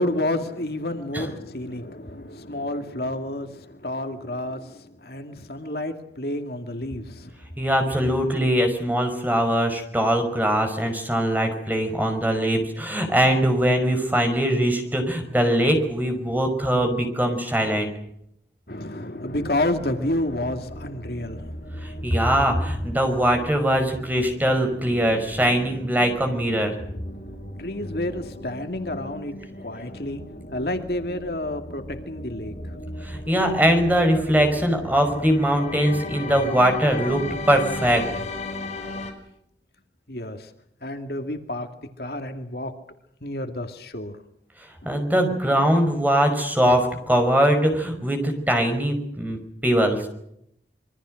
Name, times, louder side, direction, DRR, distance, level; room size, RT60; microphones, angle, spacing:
voice 1, 0.0-7.3 18.7-22.2 26.6-32.9 40.1-40.5 40.8-41.7 42.0-42.7 43.2-44.1, left 1 dB, 60° left, 6 dB, 2.4 m, -30 dB
voice 2, 7.6-17.9 21.8-26.8 33.0-38.1 44.9-50.1, equal, 10° right, 5 dB, 5.4 m, -21 dB
sound 1, 19.3-39.1, left 2 dB, 40° left, 6.1 m, -37 dB
27.0 x 24.0 x 6.5 m, 0.75 s
head